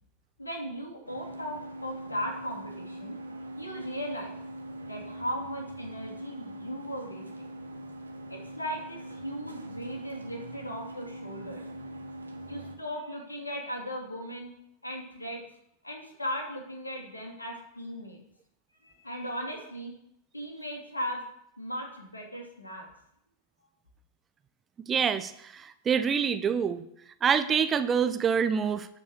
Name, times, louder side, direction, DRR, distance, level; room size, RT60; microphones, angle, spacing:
voice 1, 0.4-3.2 3.6-4.4 4.9-7.5 8.3-11.6 12.5-14.5 14.8-15.4 15.8-18.2 18.8-19.9 20.3-21.2 21.6-22.9, equal, 80° left, 1 dB, 2.8 m, -37 dB
sound 1, 1.1-12.8, right 1 dB, 80° right, 1.2 m, -42 dB
voice 2, 24.9-26.8 27.2-28.9, right 7 dB, 20° right, 11 dB, 0.7 m, -26 dB
11.5 x 5.2 x 6.5 m, 0.76 s
figure-of-eight pair, 90°, 0 cm